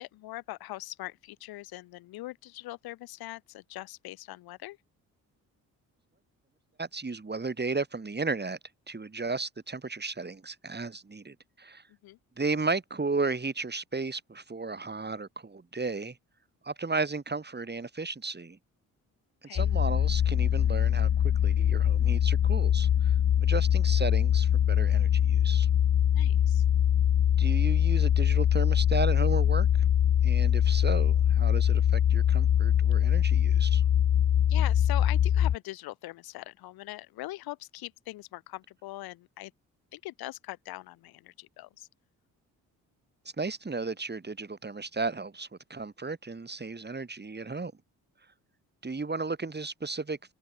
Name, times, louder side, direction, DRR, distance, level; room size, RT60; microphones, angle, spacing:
voice 1, 0.0-4.8 12.0-12.2 19.4-19.6 26.1-26.6 34.5-39.5 39.9-41.9, left 17 dB, 85° left, 7.4 m, -42 dB
voice 2, 6.8-8.6 8.9-11.8 12.4-16.2 16.6-18.6 19.5-23.1 23.4-25.7 27.4-29.7 30.2-33.8 43.4-47.7 48.8-50.3, right 3 dB, 30° right, 5.9 m, -34 dB
sound 1, 19.6-35.6, left 10 dB, 45° left, 0.7 m, -23 dB
supercardioid pair, 60°, 36 cm